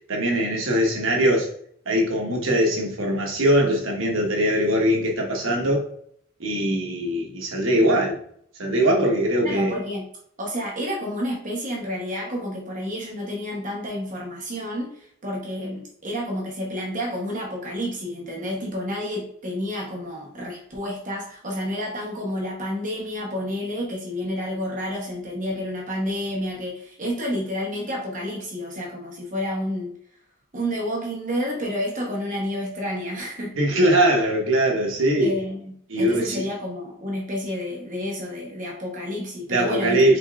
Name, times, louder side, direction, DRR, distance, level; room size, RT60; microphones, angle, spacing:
voice 1, 0.1-1.5 1.9-5.9 6.4-8.2 8.6-9.7 33.5-35.3 35.9-36.5 39.5-40.2, right 1 dB, 65° right, 1.1 m, -21 dB
voice 2, 9.4-10.1 10.4-29.9 30.5-33.6 35.2-40.2, equal, 35° right, 1.0 m, -30 dB
5.1 x 3.4 x 2.4 m
head